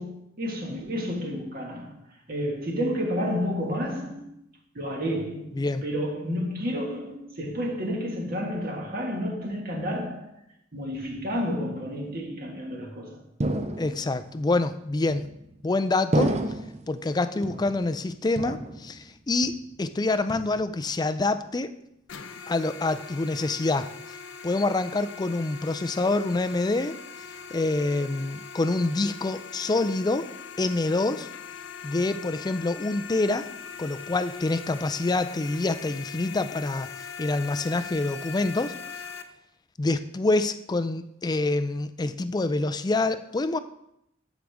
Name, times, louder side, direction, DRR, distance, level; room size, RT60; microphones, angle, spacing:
voice 1, 0.0-4.3 4.7-10.3 10.7-13.2, equal, 50° right, 1.6 m, -31 dB
voice 2, 5.5-5.8 13.8-15.3 15.6-16.4 16.9-21.7 22.5-24.2 24.4-27.0 27.5-30.3 30.6-31.3 31.8-33.5 33.8-38.7 39.8-43.6, left 2 dB, 20° left, 0.4 m, -26 dB
sound 1, 13.4-14.3 15.1-15.6 16.1-16.9 17.4-18.0 18.4-19.1 19.4-19.9 20.3-20.9, right 1 dB, 35° right, 0.6 m, -30 dB
sound 2, 22.1-39.2, left 6 dB, 75° left, 0.6 m, -41 dB
13.5 x 5.0 x 3.5 m
head